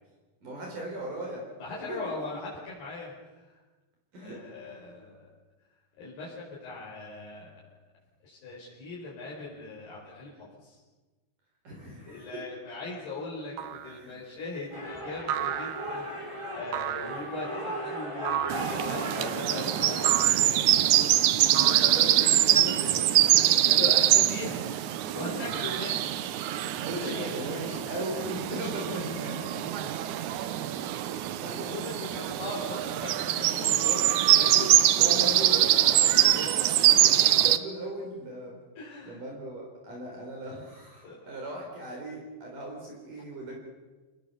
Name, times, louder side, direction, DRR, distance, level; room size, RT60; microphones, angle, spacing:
voice 1, 0.4-1.4 1.9-2.0 4.1-4.4 11.6-12.3 14.0-14.2 20.7-21.1 21.6-23.0 25.1-25.4 26.5-29.4 30.4-31.7 33.4-33.7 35.0-36.7 37.4-38.6 39.0-43.6, right 1 dB, 50° right, -1 dB, 5.8 m, -38 dB
voice 2, 1.6-3.6 4.2-5.3 6.0-7.8 8.2-10.8 12.0-20.6 21.4-24.7 25.1-26.0 26.9-27.7 28.4-28.6 28.9-30.0 30.4-30.8 31.7-35.4 36.1-36.2 37.0-37.3 38.8-39.2 41.0-41.3, left 3 dB, 70° left, -6 dB, 6.9 m, -40 dB
sound 1, 13.6-14.0 15.3-16.1 16.7-17.3 18.2-18.8 20.0-20.6 21.5-22.3, right 11 dB, 70° right, 2.3 m, -33 dB
sound 2, 14.7-20.1, right 1 dB, 5° right, 5.0 m, -37 dB
sound 3, 18.5-37.6, right 13 dB, 85° right, 1.7 m, -24 dB
28.5 x 20.5 x 7.0 m, 1.2 s
omnidirectional pair, 4.7 m